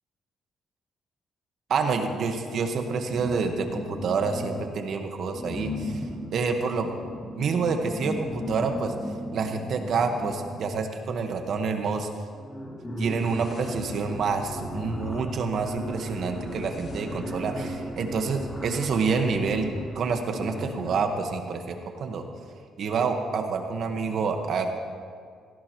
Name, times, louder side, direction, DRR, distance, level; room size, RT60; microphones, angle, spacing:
voice 1, 1.7-6.1 6.3-6.9 7.3-8.9 9.3-12.1 13.0-19.7 19.9-22.2 22.8-24.7, right 5 dB, 65° right, 5 dB, 1.5 m, -28 dB
sound 1, 3.0-4.8 5.3-11.0 11.9-12.0 12.3-21.2, left 1 dB, 15° left, 3.0 m, -36 dB
sound 2, 13.0-20.5, left 3 dB, 55° left, 2.5 m, -48 dB
17.5 x 16.0 x 3.1 m, 2.1 s
cardioid pair, 90°, 0 cm